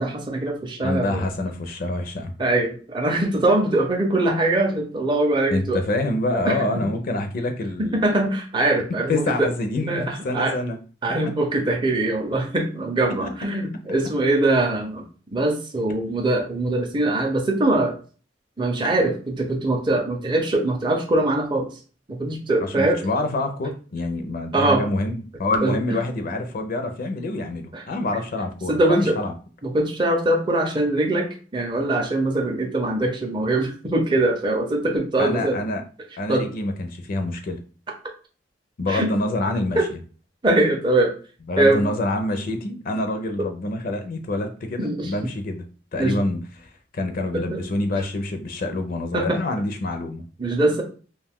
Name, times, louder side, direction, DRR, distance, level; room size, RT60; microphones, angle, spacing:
voice 1, 0.0-1.2 2.4-5.8 6.4-6.8 7.8-9.5 9.9-10.5 11.0-15.0 15.3-17.9 18.6-21.7 22.1-23.0 24.5-24.8 25.6-25.7 27.7-27.8 28.7-29.2 29.6-31.3 31.5-35.6 36.3-36.5 38.9-39.1 39.8-39.9 40.4-41.1 41.6-41.8 44.8-45.1 46.0-46.2 47.3-47.6 49.1-49.4 50.4-50.8, right 2 dB, 25° right, 1 dB, 0.5 m, -22 dB
voice 2, 0.8-2.3 5.5-8.2 8.9-10.8 22.6-29.3 35.2-35.8 36.2-37.6 38.8-40.0 41.5-45.6 45.9-50.2, left 2 dB, 50° left, 6 dB, 0.4 m, -26 dB
2.5 x 2.3 x 3.5 m, 0.38 s
head